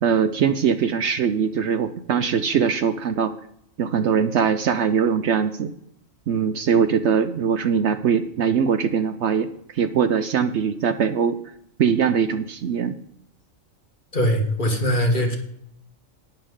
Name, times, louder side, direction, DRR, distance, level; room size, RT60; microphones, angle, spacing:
voice 1, 0.0-3.3 3.8-5.7 6.3-11.4 11.8-12.9, right 7 dB, 65° right, 11 dB, 0.9 m, -21 dB
voice 2, 14.1-15.4, equal, 40° left, 3 dB, 1.8 m, -21 dB
11.5 x 9.7 x 3.7 m, 0.72 s
omnidirectional pair, 1.4 m